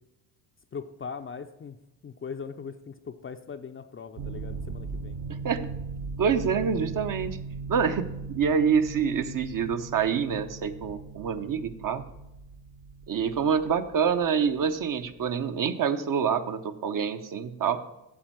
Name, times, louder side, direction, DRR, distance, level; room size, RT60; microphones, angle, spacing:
voice 1, 0.7-1.8 2.0-5.2, left 6 dB, 25° left, 7 dB, 0.6 m, -40 dB
sound 1, 4.2-15.5, right 4 dB, 60° right, 1.1 m, -39 dB
voice 2, 5.3-5.7 6.2-7.4 7.7-12.1 13.1-17.9, right 6 dB, 45° right, 9 dB, 0.8 m, -26 dB
8.8 x 7.3 x 4.5 m, 0.89 s
supercardioid pair, 75°, 48 cm